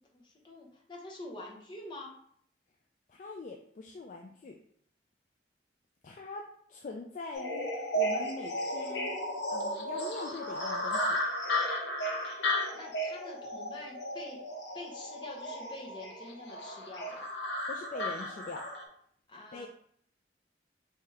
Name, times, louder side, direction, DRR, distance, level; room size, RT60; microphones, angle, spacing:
voice 1, 0.0-2.1 12.7-14.4 14.7-17.2 19.3-19.7, left 2 dB, 25° left, -2 dB, 0.7 m, -46 dB
voice 2, 3.1-4.6 6.0-9.1 9.5-11.2 17.7-18.7 19.5-19.7, left 3 dB, 45° left, 2 dB, 0.3 m, -43 dB
sound 1, 7.3-18.8, equal, 85° left, 0.7 m, -34 dB
3.2 x 2.8 x 3.5 m, 0.64 s
head